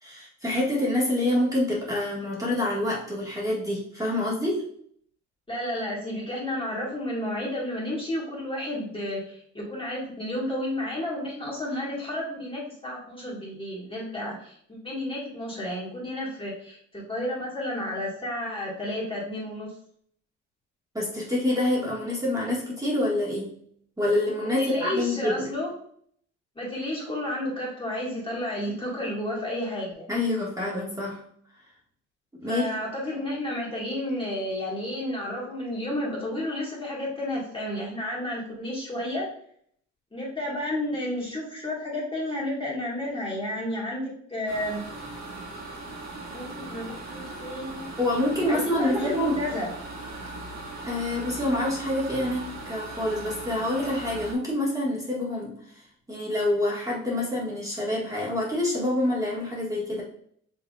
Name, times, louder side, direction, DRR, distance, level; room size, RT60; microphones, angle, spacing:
voice 1, 0.0-4.6 20.9-23.5 24.0-25.5 28.7-28.8 30.1-31.2 32.4-32.7 48.0-49.4 50.8-55.8 56.1-60.0, left 1 dB, 10° right, -5 dB, 1.8 m, -27 dB
voice 2, 5.5-19.7 24.6-25.7 26.6-30.1 32.5-39.3 40.1-44.8 46.3-47.9 48.5-49.7, left 1 dB, 15° left, -5 dB, 1.8 m, -31 dB
sound 1, 44.5-54.3, right 2 dB, 60° right, 1.6 m, -39 dB
6.0 x 3.4 x 2.4 m, 0.63 s
cardioid pair, 90°, 30 cm